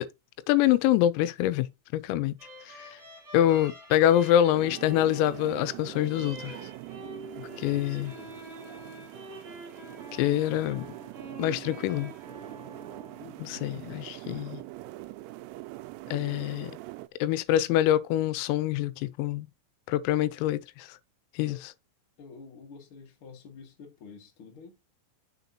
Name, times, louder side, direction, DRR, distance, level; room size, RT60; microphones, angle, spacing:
voice 1, 0.5-1.7 1.9-2.3 2.7-3.0 3.3-6.6 7.4-8.1 10.1-10.9 11.4-12.1 13.4-14.6 16.1-16.7 17.2-19.5 19.9-21.0 21.4-21.6, left 12 dB, 90° left, 3.4 m, -25 dB
sound 1, 2.4-13.8, right 1 dB, 15° right, 3.0 m, -46 dB
sound 2, 4.5-17.1, right 19 dB, 85° right, 3.2 m, -43 dB
voice 2, 7.4-8.4 13.2-13.6 21.5-21.6 22.2-24.8, left 5 dB, 60° left, 1.4 m, -49 dB
8.0 x 6.5 x 2.8 m
omnidirectional pair, 6.0 m